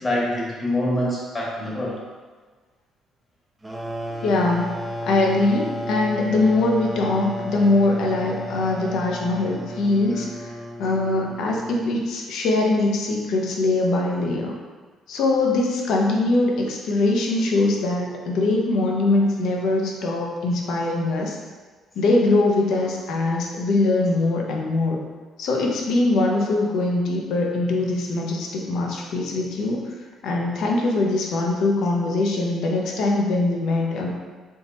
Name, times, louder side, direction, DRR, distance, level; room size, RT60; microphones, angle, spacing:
voice 1, 0.0-2.0 10.1-10.2, left 1 dB, 30° left, -4 dB, 1.0 m, -25 dB
sound 1, 3.6-12.1, equal, 15° right, 0.5 m, -33 dB
voice 2, 4.2-4.7 5.0-10.5 10.8-14.5 15.1-21.4 22.0-25.0 25.4-29.9 30.2-34.1, left 2 dB, 75° left, -1 dB, 0.6 m, -22 dB
3.5 x 3.0 x 2.8 m, 1.4 s
cardioid pair, 100°, 0 cm